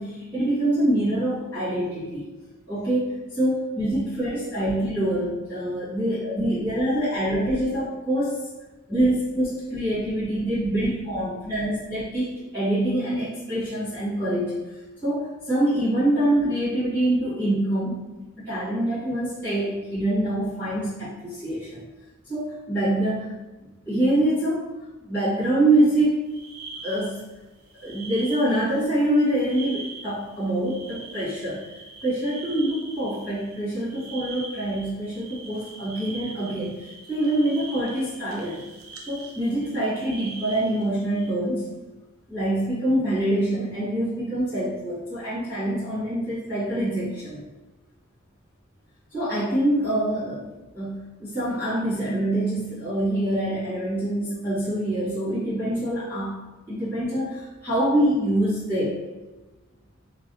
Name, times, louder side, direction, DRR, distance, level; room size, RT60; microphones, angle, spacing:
voice 1, 0.0-2.3 2.7-8.4 8.9-14.5 15.0-18.0 18.4-21.8 22.3-23.3 23.6-24.7 25.0-26.3 26.8-27.2 27.8-31.7 32.0-38.6 39.1-41.7 42.3-47.4 49.1-56.4 56.7-59.0, right 1 dB, 10° left, -16 dB, 1.4 m, -25 dB
sound 1, 26.3-27.3 27.6-41.3, right 3 dB, 85° right, 0.5 m, -42 dB
3.0 x 2.5 x 2.7 m, 1.1 s
head